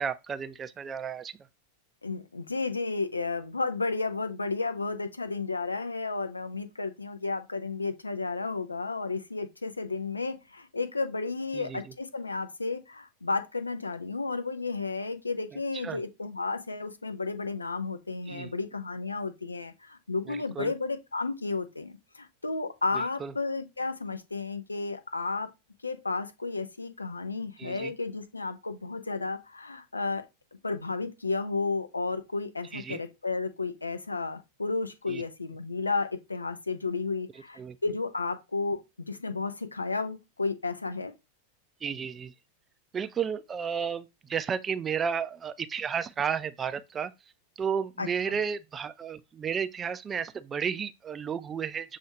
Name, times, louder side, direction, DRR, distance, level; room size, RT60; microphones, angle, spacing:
voice 1, 0.0-1.3 11.5-11.9 15.5-16.0 18.3-18.5 20.3-20.7 22.9-23.3 27.6-27.9 32.7-33.0 35.1-35.2 37.6-37.8 41.8-42.3 42.9-47.1 47.6-52.0, right 7 dB, 20° right, 0.3 m, -33 dB
voice 2, 2.0-25.5 25.8-30.3 30.6-41.1 48.0-48.4, left 3 dB, 80° left, 0.4 m, -32 dB
6.9 x 2.4 x 2.9 m
figure-of-eight pair, 90°, 0 cm